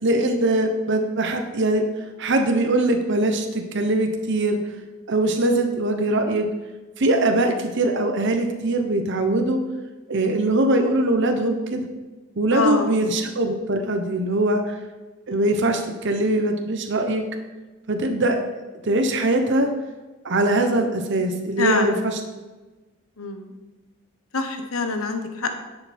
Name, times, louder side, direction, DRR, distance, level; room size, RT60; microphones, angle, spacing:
voice 1, 0.0-1.8 2.2-4.6 5.1-6.5 7.0-9.6 10.1-11.9 12.4-14.8 15.3-17.2 17.9-18.4 18.8-19.7 20.2-22.2, right 2 dB, 60° right, 5 dB, 1.0 m, -22 dB
voice 2, 12.5-13.0 21.6-22.0 23.2-23.5 24.3-25.6, left 3 dB, 85° left, 6 dB, 1.2 m, -25 dB
10.5 x 6.9 x 4.4 m, 1.2 s
head